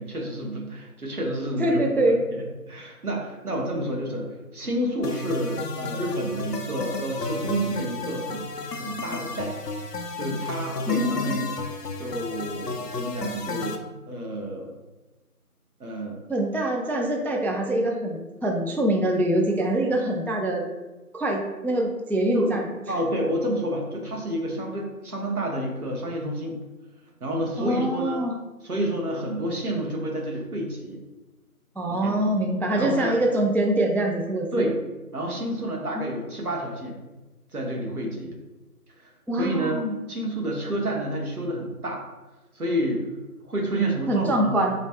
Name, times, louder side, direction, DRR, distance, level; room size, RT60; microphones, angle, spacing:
voice 1, 0.0-9.5 10.2-11.7 12.0-13.8 14.1-14.8 15.8-16.1 22.3-26.6 27.2-28.2 28.6-31.0 31.9-32.2 32.8-33.1 34.5-34.7 35.1-36.9 37.5-38.4 38.9-39.8 40.1-42.1 42.5-43.1 43.4-44.6, right 1 dB, 70° right, 0 dB, 1.0 m, -29 dB
voice 2, 1.6-2.2 10.9-11.4 16.3-20.6 21.1-22.6 27.6-28.3 31.8-34.7 36.0-36.1 39.3-40.0 44.1-44.7, right 1 dB, 5° left, 1 dB, 0.3 m, -24 dB
sound 1, 5.0-13.8, left 3 dB, 90° left, 0.7 m, -33 dB
3.2 x 3.1 x 2.9 m, 1.1 s
figure-of-eight pair, 175°, 46 cm